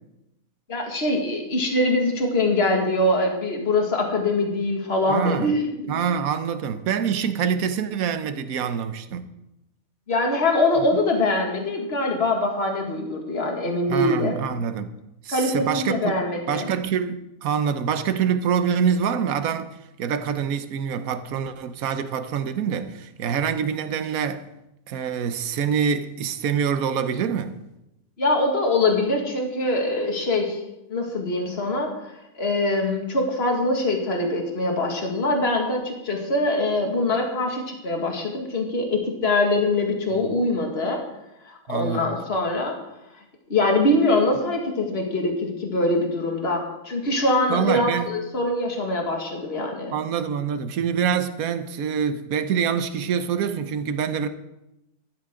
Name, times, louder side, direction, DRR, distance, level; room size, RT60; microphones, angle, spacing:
voice 1, 0.7-5.9 10.1-14.4 15.3-16.7 28.2-30.6 30.9-41.0 41.4-42.7 43.5-49.9, left 2 dB, 45° left, 2.3 m, -23 dB
voice 2, 5.1-5.5 5.9-9.3 13.9-14.9 15.2-16.1 16.5-24.5 24.9-27.5 40.2-40.4 41.7-42.1 47.5-48.1 49.9-54.3, right 7 dB, 75° right, 1.3 m, -25 dB
15.5 x 12.5 x 3.8 m
omnidirectional pair, 1.5 m